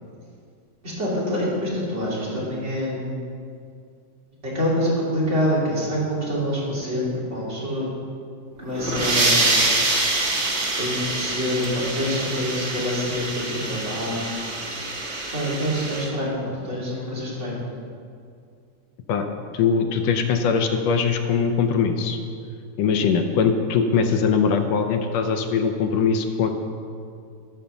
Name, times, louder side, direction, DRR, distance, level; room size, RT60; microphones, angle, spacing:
voice 1, 0.8-3.2 4.4-7.9 8.6-9.5 10.8-14.4 15.3-17.6, equal, 25° right, -7 dB, 2.9 m, -26 dB
sound 1, 8.6-16.1, right 2 dB, 65° right, 0.6 m, -25 dB
voice 2, 19.5-22.2 22.8-26.5, left 6 dB, 75° left, 5 dB, 1.7 m, -21 dB
13.0 x 5.0 x 6.9 m, 2.4 s
omnidirectional pair, 3.4 m